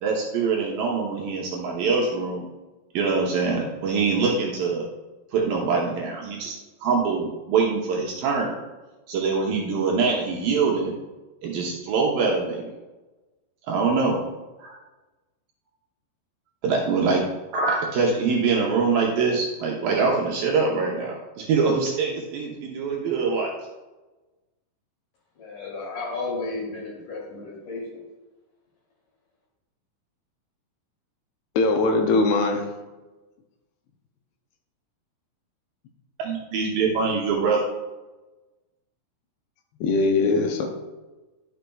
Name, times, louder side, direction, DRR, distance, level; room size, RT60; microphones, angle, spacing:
voice 1, 0.0-2.4 2.9-4.8 5.3-6.5 6.8-8.5 9.1-10.9 11.4-12.7 13.7-14.2 14.6-14.8 16.6-17.3 17.5-23.5 36.2-37.6, right 4 dB, 75° right, -2 dB, 2.3 m, -24 dB
voice 2, 25.4-28.0, left 3 dB, 55° left, -3 dB, 3.4 m, -33 dB
voice 3, 31.6-32.7 39.8-40.7, left 3 dB, 80° left, 4 dB, 2.6 m, -21 dB
11.0 x 6.5 x 2.3 m, 1.2 s
omnidirectional pair, 4.8 m